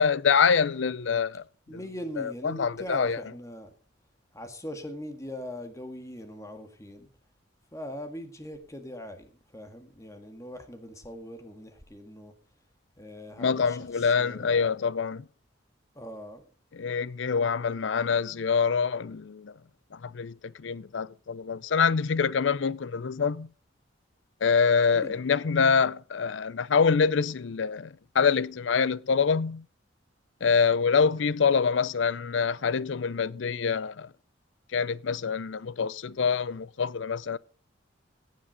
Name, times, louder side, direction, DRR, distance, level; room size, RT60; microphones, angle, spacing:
voice 1, 0.0-1.4 2.2-3.2 13.4-15.2 16.7-19.5 19.9-23.5 24.4-29.6 30.4-34.1 34.7-37.4, left 6 dB, 75° left, 0.5 m, -25 dB
voice 2, 1.7-3.7 4.3-7.1 7.7-12.3 13.0-14.7 16.0-16.4 24.9-25.2, equal, 15° left, 1.9 m, -41 dB
17.0 x 7.6 x 5.1 m
head